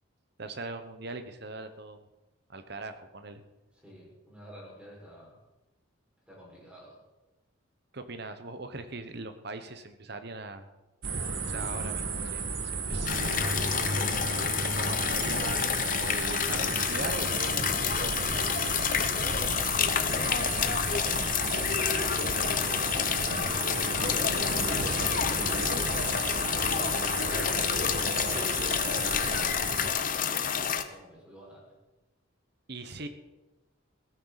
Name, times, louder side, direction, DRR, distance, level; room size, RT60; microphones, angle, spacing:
voice 1, 0.4-2.0 2.5-3.4 7.9-10.7 11.4-14.0 14.7-19.0 32.7-33.1, right 3 dB, 50° right, 9 dB, 1.1 m, -40 dB
voice 2, 3.7-5.4 6.3-7.0 19.2-21.4 23.7-24.5 25.1-26.5 26.9-28.8 29.7-30.4 30.7-31.8 33.0-33.1, equal, 5° right, -4 dB, 5.5 m, -50 dB
sound 1, 11.0-29.9, right 4 dB, 80° right, 1.9 m, -34 dB
sound 2, 13.1-30.8, left 7 dB, 40° left, 0.8 m, -29 dB
17.0 x 14.5 x 4.2 m, 1.1 s
head